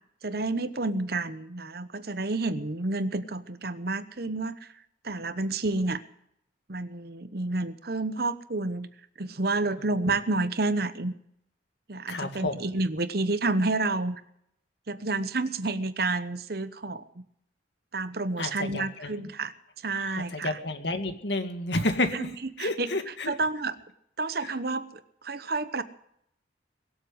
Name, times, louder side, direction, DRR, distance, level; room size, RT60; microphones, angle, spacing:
voice 1, 0.2-4.7 5.0-6.0 6.7-8.9 9.2-11.1 11.9-14.2 14.9-17.0 17.9-19.5 19.8-20.6 22.1-22.3 22.6-23.7 24.2-25.8, right 2 dB, 55° right, 13 dB, 1.0 m, -30 dB
voice 2, 12.1-12.6 18.4-19.3 19.9-22.3 22.6-23.3 24.4-24.5, left 2 dB, 65° left, 7 dB, 2.0 m, -30 dB
22.5 x 7.9 x 7.9 m, 0.74 s
head